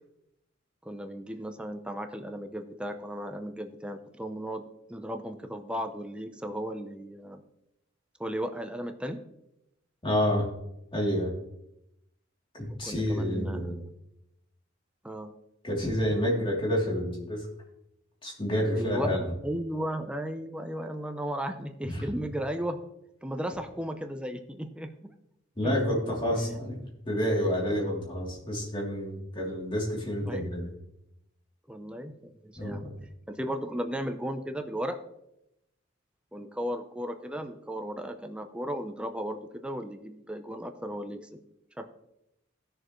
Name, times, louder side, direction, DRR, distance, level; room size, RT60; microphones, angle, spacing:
voice 1, 0.8-7.4 8.2-9.2 12.8-13.9 15.0-15.3 18.7-22.8 23.2-25.1 25.6-25.7 26.3-26.7 27.7-27.9 30.2-30.4 31.7-35.0 36.3-41.4 41.8-41.9, equal, 5° right, 6 dB, 0.6 m, -35 dB
voice 2, 10.0-10.5 10.9-11.3 12.6-13.7 15.6-17.5 18.2-19.2 21.8-22.0 25.6-26.8 27.1-30.7 32.6-33.0, equal, 25° left, -3 dB, 2.9 m, -29 dB
16.5 x 6.6 x 3.1 m, 0.84 s
head